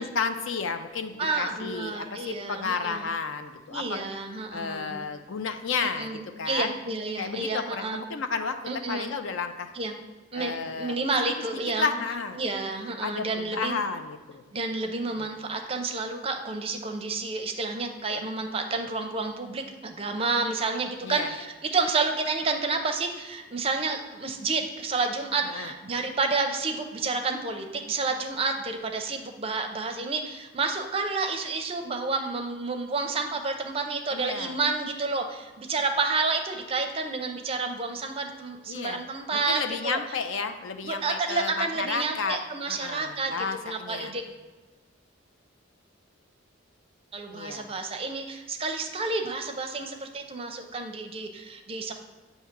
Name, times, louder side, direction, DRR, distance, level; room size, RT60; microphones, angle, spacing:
voice 1, 0.0-4.0 4.5-6.7 7.2-8.6 8.9-9.7 10.3-11.0 11.2-11.3 11.8-12.4 13.0-14.4 15.1-15.3 21.0-21.3 25.4-25.7 34.1-34.6 38.7-39.0 39.3-42.4 42.7-44.2 47.3-47.7, left 5 dB, 70° left, 8 dB, 0.5 m, -32 dB
voice 2, 1.2-3.1 3.7-5.1 6.0-8.0 8.7-9.1 9.7-9.9 10.3-11.9 12.4-13.8 14.5-40.0 40.8-43.3 43.6-44.2 47.1-51.9, right 3 dB, 25° right, 4 dB, 0.5 m, -30 dB
8.0 x 2.7 x 5.9 m, 1.3 s
head